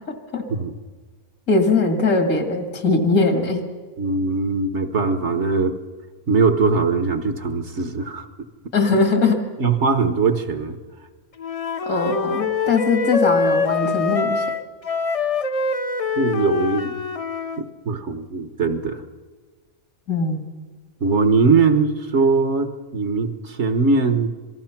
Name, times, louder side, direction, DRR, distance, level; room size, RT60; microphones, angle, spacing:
voice 1, 0.1-0.5 1.5-3.6 8.7-9.4 11.9-14.5 20.1-20.4, left 3 dB, 75° left, 5 dB, 2.7 m, -20 dB
voice 2, 4.0-5.8 6.3-8.3 9.6-10.8 16.2-17.0 17.6-19.0 21.0-24.3, right 4 dB, 50° right, 9 dB, 1.4 m, -21 dB
Wind instrument woodwind instrument, 11.4-17.6, left 4 dB, 50° left, 0.4 m, -24 dB
26.5 x 19.0 x 5.9 m, 1.4 s
omnidirectional pair, 1.5 m